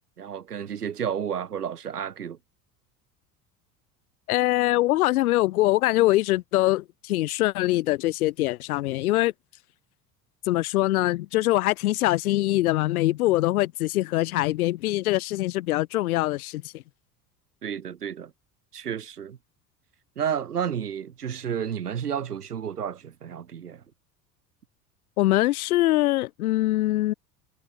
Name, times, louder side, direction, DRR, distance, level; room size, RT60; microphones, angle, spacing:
voice 1, 0.2-2.4 17.6-18.3 18.7-19.4 20.2-23.8, right 8 dB, 75° right, 4.0 m, -31 dB
voice 2, 4.3-9.3 10.5-16.8 25.2-27.1, left 17 dB, 70° left, 0.5 m, -23 dB
figure-of-eight pair, 70°, 47 cm